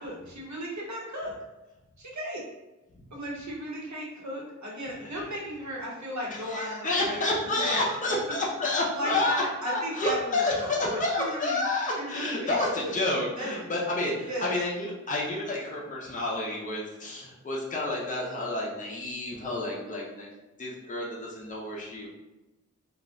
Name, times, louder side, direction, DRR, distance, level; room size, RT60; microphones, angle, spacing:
voice 1, 0.0-1.3 2.0-2.4 3.1-8.4 8.9-11.6 12.0-13.7 14.3-14.5, equal, 65° right, -3 dB, 0.9 m, -36 dB
voice 2, 6.3-20.3 20.6-22.1, left 2 dB, 25° left, -4 dB, 0.6 m, -29 dB
2.4 x 2.0 x 3.6 m, 1.0 s
wide cardioid pair, 80°, 31 cm